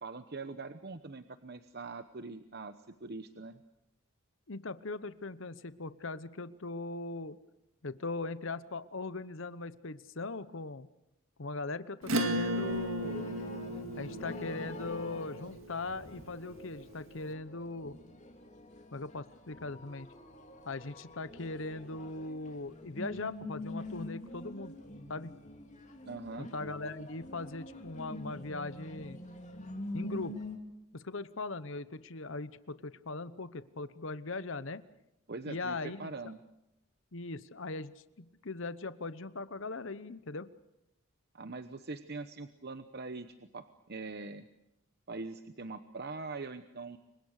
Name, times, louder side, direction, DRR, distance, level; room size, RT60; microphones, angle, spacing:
voice 1, 0.0-2.7 3.0-3.6 26.0-26.5 35.3-36.4 41.3-44.4 45.1-47.0, right 3 dB, 50° right, 9 dB, 1.0 m, -42 dB
voice 2, 4.5-7.4 7.8-10.9 11.4-13.3 14.0-18.0 18.9-20.1 20.7-24.7 25.1-25.3 26.4-29.2 29.9-30.4 30.9-34.8 35.5-36.1 37.1-37.9 38.2-40.5, left 3 dB, 60° left, 14 dB, 1.0 m, -40 dB
Acoustic guitar / Strum, 12.0-17.0, right 1 dB, 70° right, 2.2 m, -36 dB
sound 1, 12.4-30.6, left 1 dB, 35° left, 3.1 m, -45 dB
29.5 x 24.5 x 6.6 m, 0.86 s
head